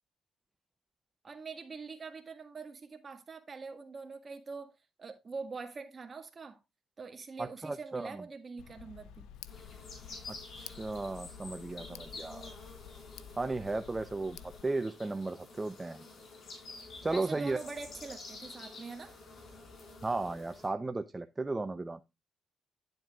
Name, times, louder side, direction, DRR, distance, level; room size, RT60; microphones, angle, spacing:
voice 1, 1.2-6.6 7.0-9.3 17.1-19.1, right 4 dB, 35° right, 1.7 m, -44 dB
voice 2, 7.4-8.3 10.3-12.4 13.4-16.1 17.0-17.6 20.0-22.0, right 3 dB, 20° right, 0.6 m, -35 dB
Tick, 8.6-14.6, left 9 dB, 90° left, 0.5 m, -51 dB
sound 1, 9.5-20.7, left 3 dB, 55° left, 4.4 m, -49 dB
11.0 x 7.8 x 2.4 m
cardioid pair, 90°, 0 cm